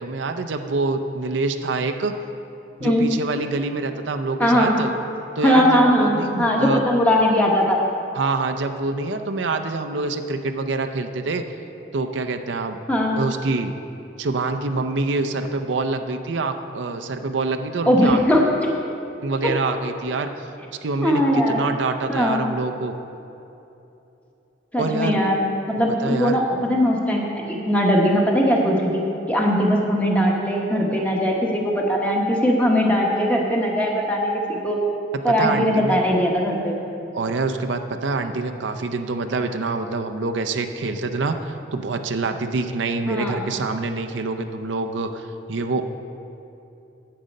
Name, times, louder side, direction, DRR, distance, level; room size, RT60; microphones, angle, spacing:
voice 1, 0.0-2.1 2.8-4.9 5.4-6.8 8.1-11.4 11.9-12.8 13.2-13.7 14.2-18.2 19.2-20.5 20.8-21.2 21.5-23.0 24.8-25.2 26.0-26.4 35.4-36.0 37.1-45.8, right 3 dB, 80° right, 6 dB, 0.6 m, -26 dB
voice 2, 4.4-4.7 5.4-7.8 12.9-13.2 17.9-18.4 19.4-19.5 21.0-21.6 22.1-22.4 24.7-25.4 25.7-34.8 35.2-36.8 43.1-43.4, equal, 10° left, -2 dB, 1.1 m, -20 dB
10.0 x 7.7 x 5.3 m, 2.8 s
head